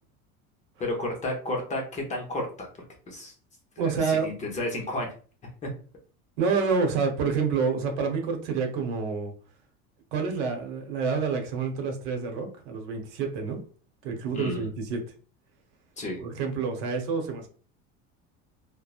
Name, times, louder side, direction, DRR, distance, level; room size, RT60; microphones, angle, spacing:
voice 1, 0.8-2.7 3.1-3.3 3.8-5.1 5.6-5.7 14.3-14.7 16.0-16.2, left 1 dB, 25° left, 1 dB, 0.6 m, -32 dB
voice 2, 3.8-4.3 6.4-9.3 10.1-13.6 14.0-15.0 16.2-17.5, right 5 dB, 85° right, 4 dB, 0.8 m, -28 dB
2.9 x 2.1 x 2.3 m, 0.40 s
cardioid pair, 145°, 32 cm